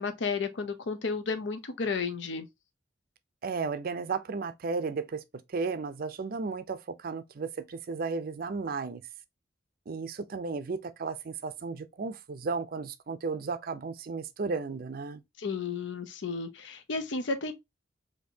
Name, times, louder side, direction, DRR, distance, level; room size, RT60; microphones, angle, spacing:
voice 1, 0.0-2.5 15.4-17.5, left 4 dB, 75° left, 0.6 m, -32 dB
voice 2, 3.4-9.0 9.9-15.2, right 4 dB, 50° right, 0.5 m, -34 dB
4.3 x 2.7 x 2.7 m
head